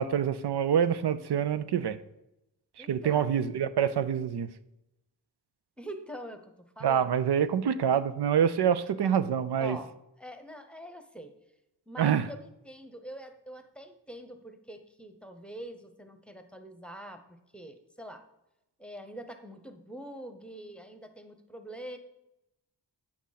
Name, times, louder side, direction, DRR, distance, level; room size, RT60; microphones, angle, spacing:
voice 1, 0.0-2.0 2.8-4.5 6.8-9.8 12.0-12.3, right 8 dB, 70° right, 13 dB, 0.6 m, -26 dB
voice 2, 2.8-3.4 5.8-7.1 9.6-9.9 10.2-11.3 11.9-18.3 18.8-22.0, equal, 5° left, 8 dB, 0.9 m, -44 dB
8.5 x 6.1 x 4.1 m, 0.91 s
cardioid pair, 50°, 41 cm